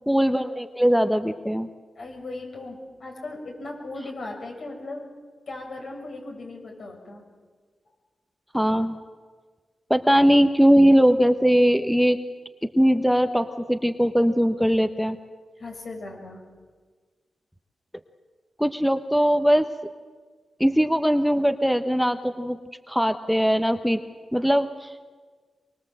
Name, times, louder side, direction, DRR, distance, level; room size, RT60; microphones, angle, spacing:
voice 1, 0.1-1.7 8.5-9.0 9.9-12.2 12.8-15.2 18.6-19.7 20.6-22.6 22.9-24.0 24.3-24.9, equal, ahead, 8 dB, 1.1 m, -20 dB
voice 2, 2.0-5.1 5.5-7.2 15.6-16.4, left 2 dB, 70° left, 1 dB, 7.0 m, -37 dB
24.0 x 23.0 x 7.8 m, 1.5 s
cardioid pair, 65°, 0 cm